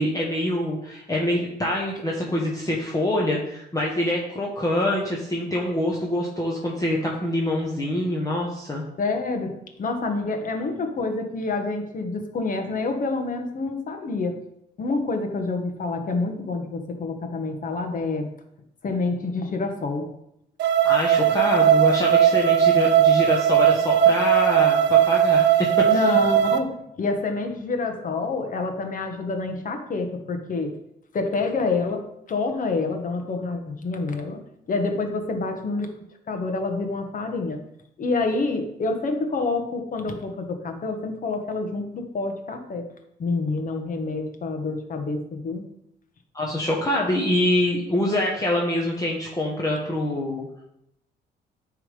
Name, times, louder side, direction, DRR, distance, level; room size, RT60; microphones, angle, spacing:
voice 1, 0.0-8.8 20.8-26.2 46.3-50.5, left 1 dB, 20° left, -3 dB, 1.5 m, -25 dB
voice 2, 9.0-14.4 14.8-18.3 18.8-20.1 25.8-30.8 31.1-34.4 34.7-35.9 36.3-37.6 38.0-42.9 43.2-45.7 46.4-46.5, left 3 dB, 45° left, 5 dB, 1.5 m, -27 dB
sound 1, 20.6-26.6, right 9 dB, 75° right, 0.7 m, -18 dB
9.8 x 3.7 x 5.2 m, 0.80 s
cardioid pair, 85°, 18 cm